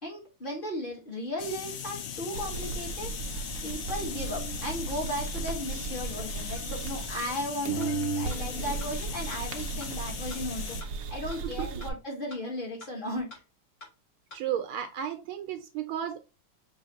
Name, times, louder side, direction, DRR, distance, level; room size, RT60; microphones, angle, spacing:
voice 1, 0.0-3.1 3.6-10.8 11.1-13.3, left 1 dB, 30° left, 1.5 m, -36 dB
sound 1, 1.4-10.8, left 8 dB, 75° left, 1.4 m, -39 dB
sound 2, 2.3-7.4 7.7-11.9, right 5 dB, 65° right, 0.8 m, -35 dB
sound 3, 7.8-7.9 8.3-8.4 8.8-8.9 9.3-9.4 9.8-9.9 10.3-10.4 10.8-10.9 11.3-11.4 11.8-11.9 12.3-12.4 12.8-12.9 13.3-13.4 13.8-13.9 14.3-14.4, left 3 dB, 45° left, 2.1 m, -45 dB
voice 2, 14.3-16.2, right 10 dB, 80° right, 1.4 m, -33 dB
5.5 x 3.1 x 2.9 m
omnidirectional pair, 2.3 m